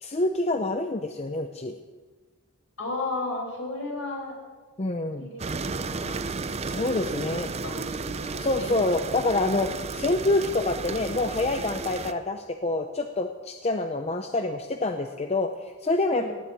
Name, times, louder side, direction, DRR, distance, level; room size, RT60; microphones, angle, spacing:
voice 1, 0.0-1.8 4.8-5.3 6.6-7.5 8.4-16.3, left 2 dB, 30° left, 6 dB, 0.6 m, -27 dB
voice 2, 2.8-4.3 5.2-6.2 6.7-8.7 16.1-16.3, left 2 dB, 65° left, 0 dB, 5.1 m, -35 dB
sound 1, 5.4-12.1, right 4 dB, 30° right, 0.5 m, -33 dB
18.0 x 7.0 x 8.5 m, 1.3 s
head